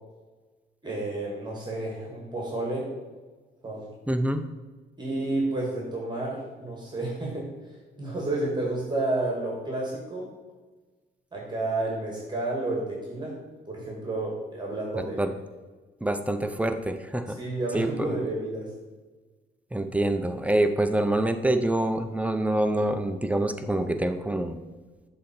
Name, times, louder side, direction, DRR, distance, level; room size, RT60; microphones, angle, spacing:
voice 1, 0.8-2.9 3.6-3.9 5.0-7.5 8.0-10.3 11.3-13.4 13.7-15.2 17.3-18.7, right 2 dB, 20° right, -2 dB, 1.8 m, -30 dB
voice 2, 4.1-4.4 15.2-15.3 16.0-17.4 17.7-18.2 19.7-24.6, right 1 dB, 5° right, 8 dB, 0.5 m, -26 dB
6.9 x 3.9 x 4.4 m, 1.3 s
cardioid pair, 90°, 20 cm